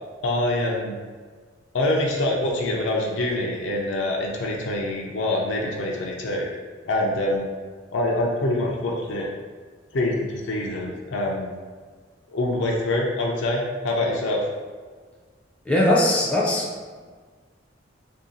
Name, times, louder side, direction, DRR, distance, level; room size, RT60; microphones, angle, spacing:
voice 1, 0.2-1.0 1.7-6.5 6.9-7.5 7.9-9.3 9.9-11.5 12.3-14.4, left 1 dB, 85° left, -2 dB, 0.5 m, -25 dB
voice 2, 15.7-16.7, left 1 dB, 5° left, -4 dB, 0.4 m, -20 dB
2.7 x 2.7 x 4.0 m, 1.5 s
head